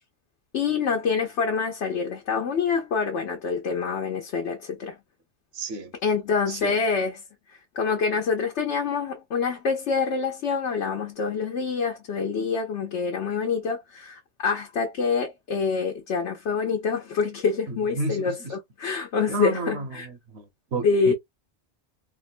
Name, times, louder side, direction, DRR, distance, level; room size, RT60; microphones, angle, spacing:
voice 1, 0.5-5.0 6.0-7.2 7.5-20.1 20.8-21.1, left 5 dB, 80° left, 1.1 m, -26 dB
voice 2, 5.5-5.9 6.5-6.8 17.7-18.5 19.3-20.5 20.7-21.1, right 2 dB, 70° right, 1.1 m, -31 dB
3.5 x 2.2 x 2.4 m
omnidirectional pair, 1.1 m